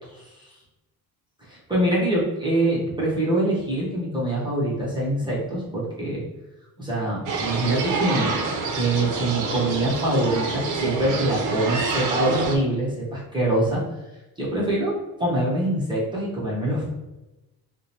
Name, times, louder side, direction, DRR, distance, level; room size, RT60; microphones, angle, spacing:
voice 1, 1.5-6.2 6.8-8.4 8.7-13.8 14.4-16.9, right 1 dB, 10° right, -7 dB, 0.9 m, -24 dB
sound 1, 7.3-12.6, right 4 dB, 50° right, 0.6 m, -27 dB
4.7 x 2.2 x 2.8 m, 1.0 s
cardioid pair, 140°, 39 cm